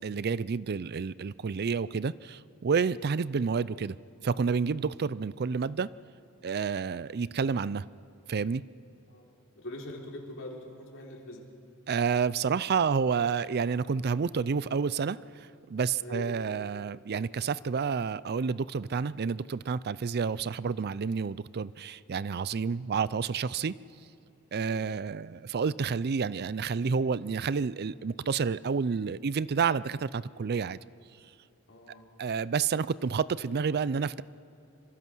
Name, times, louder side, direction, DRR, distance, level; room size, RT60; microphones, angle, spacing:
voice 1, 0.0-4.0 4.2-5.9 6.4-7.8 8.3-8.6 11.9-23.7 24.5-30.8 32.2-34.2, right 5 dB, 50° right, 19 dB, 0.4 m, -29 dB
voice 2, 9.6-11.4 16.0-16.3 24.6-24.8 31.7-32.1, left 1 dB, 60° left, -1 dB, 3.8 m, -42 dB
26.0 x 24.5 x 6.2 m, 2.8 s
head